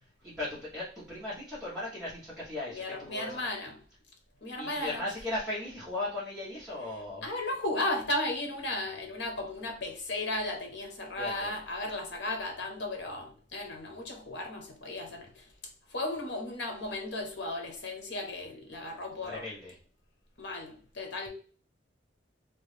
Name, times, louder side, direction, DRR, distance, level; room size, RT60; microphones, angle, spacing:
voice 1, 0.2-3.4 4.6-7.3 11.1-11.5 19.3-19.7, left 2 dB, 5° right, 1.2 m, -37 dB
voice 2, 2.7-3.8 4.4-5.0 6.8-15.5 15.9-19.4 20.4-21.3, left 1 dB, 65° left, 1.1 m, -35 dB
3.1 x 2.6 x 3.3 m
head